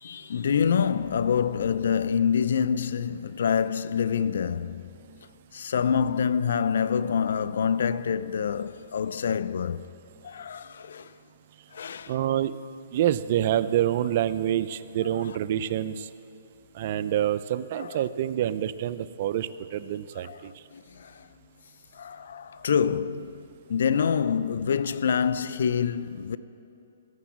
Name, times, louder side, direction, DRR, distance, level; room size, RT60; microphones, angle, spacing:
voice 1, 0.0-5.0 5.5-9.9 10.2-11.1 11.7-12.1 17.8-18.0 20.2-20.4 20.7-21.3 21.9-26.4, left 7 dB, 70° left, 0.4 m, -26 dB
voice 2, 12.1-12.6 12.9-16.1 16.7-20.5, right 11 dB, 45° right, 0.4 m, -27 dB
16.0 x 7.0 x 7.4 m
hypercardioid pair, 150°, 0 cm